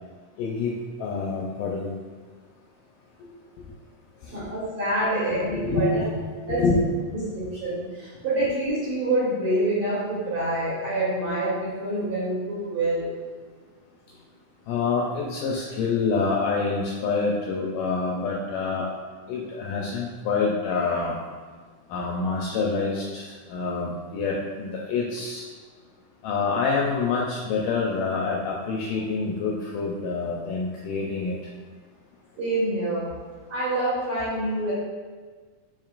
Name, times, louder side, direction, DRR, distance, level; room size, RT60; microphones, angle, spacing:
voice 1, 0.4-0.7 1.0-1.9 4.2-4.3 5.3-6.1 6.5-6.8 14.7-18.9 19.3-21.2 21.9-25.5 26.2-31.4, left 4 dB, 80° left, -2 dB, 2.0 m, -26 dB
voice 2, 4.3-6.0 6.5-6.6 7.1-13.1 32.4-33.1 33.5-34.7, right 1 dB, 45° right, -9 dB, 2.1 m, -26 dB
7.4 x 5.3 x 2.5 m, 1.5 s
omnidirectional pair, 4.3 m